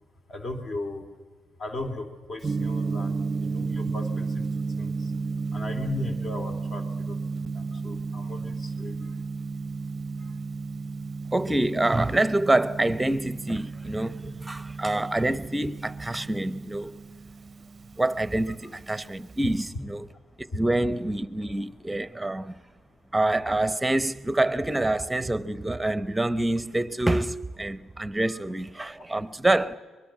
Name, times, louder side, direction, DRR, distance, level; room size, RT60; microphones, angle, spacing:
voice 1, 0.3-1.1 1.6-4.4 4.8-5.1 5.5-7.2 7.5-9.1 10.3-10.4 18.5-18.6 20.5-20.6 28.2-28.4, left 2 dB, 45° left, 2.9 m, -37 dB
Gong, 2.4-19.7, right 4 dB, 35° right, 0.6 m, -33 dB
voice 2, 11.3-17.0 18.0-20.1 20.4-22.6 23.1-29.8, right 1 dB, 10° right, 0.9 m, -26 dB
23.5 x 21.0 x 7.5 m
cardioid pair, 90°, 0 cm